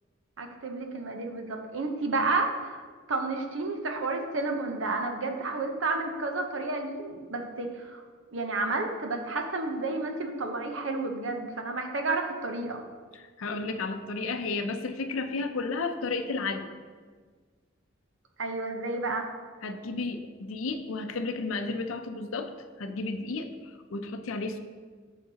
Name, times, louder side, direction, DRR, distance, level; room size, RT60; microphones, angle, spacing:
voice 1, 0.4-2.8 3.1-8.0 8.3-12.8 18.4-19.3, right 3 dB, 70° right, 4 dB, 0.9 m, -31 dB
voice 2, 13.4-16.7 19.6-22.5 22.8-24.6, left 3 dB, 90° left, 7 dB, 0.5 m, -32 dB
9.2 x 6.5 x 2.9 m, 1.5 s
head